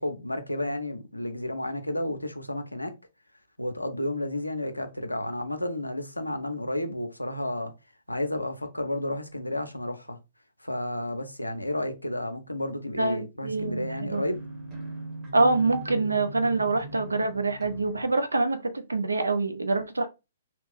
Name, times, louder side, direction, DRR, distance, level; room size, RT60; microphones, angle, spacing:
voice 1, 0.0-2.9 3.6-7.7 8.1-10.2 10.6-14.4, left 1 dB, 85° left, 0.5 m, -31 dB
voice 2, 13.0-14.2 15.3-20.1, right 3 dB, 75° right, 0.4 m, -25 dB
sound 1, 13.5-18.1, right 2 dB, 25° right, 1.0 m, -40 dB
3.0 x 2.5 x 3.3 m
figure-of-eight pair, 120°, 0 cm